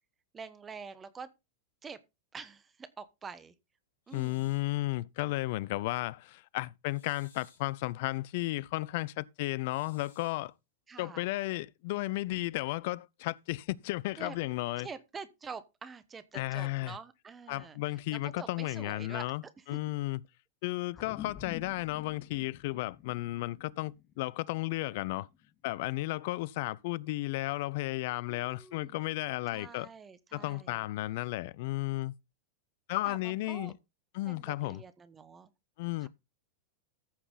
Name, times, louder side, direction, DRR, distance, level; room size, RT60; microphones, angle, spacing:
voice 1, 0.3-1.3 1.8-2.0 2.3-3.5 4.1-4.4 10.9-11.2 14.2-14.4 14.8-17.8 18.1-19.3 19.6-19.7 28.3-29.0 29.5-30.8 33.1-33.7 34.2-35.5 36.0-36.1, right 5 dB, 20° right, 1.1 m, -46 dB
sound 1, 4.1-4.7 6.9-7.7 9.6-10.4, left 5 dB, 70° left, 2.4 m, -62 dB
voice 2, 4.1-10.5 11.0-14.9 16.3-17.0 17.5-19.4 19.7-20.2 20.6-25.3 25.6-29.9 30.3-32.1 32.9-33.7 34.1-34.8 35.8-36.1, left 19 dB, 50° left, 0.5 m, -34 dB
sound 2, 20.9-25.7, left 9 dB, 30° left, 1.9 m, -49 dB
14.0 x 5.9 x 4.0 m
figure-of-eight pair, 90°, 0 cm